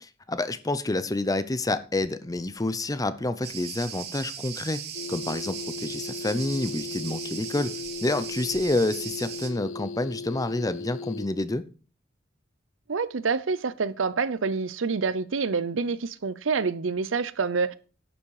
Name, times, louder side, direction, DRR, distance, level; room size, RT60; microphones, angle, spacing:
voice 1, 0.0-4.8 5.1-7.7 8.0-11.6, left 2 dB, 20° left, 0.7 m, -28 dB
Cricket, 3.4-9.5, right 8 dB, 55° right, 1.5 m, -38 dB
sound 1, 4.9-11.3, left 4 dB, 80° left, 0.4 m, -37 dB
voice 2, 12.9-17.7, right 4 dB, 85° right, 0.6 m, -27 dB
11.0 x 7.2 x 4.8 m
head